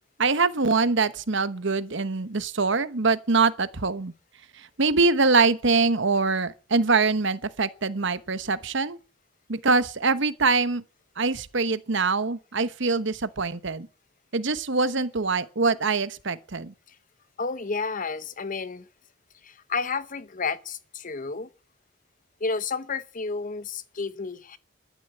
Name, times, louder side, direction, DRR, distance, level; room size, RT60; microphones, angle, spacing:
voice 1, 0.2-4.1 4.6-9.0 9.5-10.8 11.2-13.9 14.3-16.7, right 4 dB, 60° right, 1.0 m, -24 dB
voice 2, 17.4-18.9 19.4-21.5 22.4-24.6, left 4 dB, 40° left, 0.9 m, -31 dB
12.5 x 12.5 x 7.8 m
head